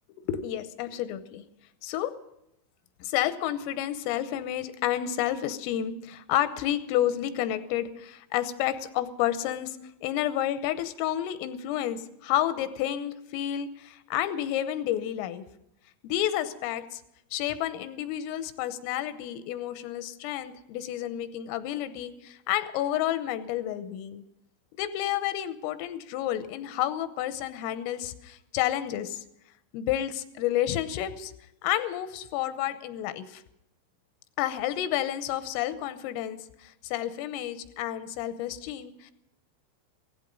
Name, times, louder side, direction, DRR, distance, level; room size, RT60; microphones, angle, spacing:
voice 1, 0.2-1.4 1.8-2.1 3.0-9.8 10.0-15.4 16.0-17.0 17.3-24.2 24.8-29.2 29.7-31.3 31.6-33.4 34.4-39.1, left 12 dB, 85° left, 12 dB, 3.4 m, -30 dB
16.5 x 15.5 x 5.2 m, 0.83 s
omnidirectional pair, 6.0 m